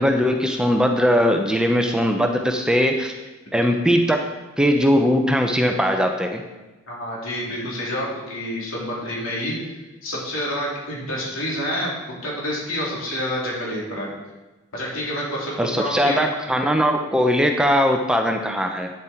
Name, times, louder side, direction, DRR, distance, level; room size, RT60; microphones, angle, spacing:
voice 1, 0.0-3.1 3.5-4.2 4.6-6.4 15.6-18.9, equal, 5° right, 4 dB, 0.5 m, -20 dB
voice 2, 6.9-9.6 10.0-11.9 12.2-14.1 14.7-16.2, equal, 75° left, -4 dB, 3.3 m, -28 dB
9.2 x 7.4 x 4.4 m, 1.1 s
head